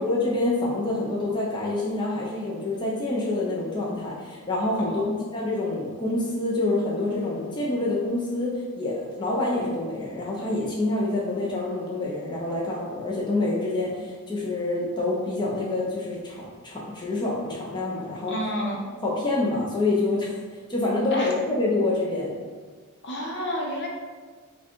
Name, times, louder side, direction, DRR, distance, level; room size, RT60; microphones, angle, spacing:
voice 1, 0.0-5.0 5.3-18.4 19.0-20.4 20.7-22.3, left 2 dB, 20° left, -6 dB, 0.6 m, -27 dB
voice 2, 4.8-5.2 18.3-18.8 21.1-21.3 23.0-23.9, equal, 55° left, -2 dB, 0.9 m, -29 dB
4.8 x 2.3 x 4.4 m, 1.5 s
head